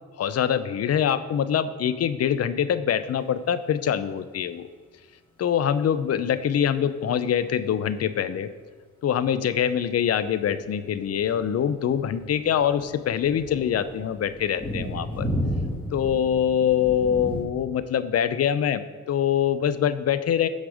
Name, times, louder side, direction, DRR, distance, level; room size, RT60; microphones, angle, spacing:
voice 1, 0.2-4.7 5.4-8.5 9.0-15.3 15.9-18.8 19.1-20.5, left 9 dB, 55° left, 13 dB, 0.7 m, -24 dB
sound 1, 9.0-17.4, equal, 15° left, 3.4 m, -34 dB
15.5 x 5.4 x 5.0 m, 1.4 s
cardioid pair, 90°, 30 cm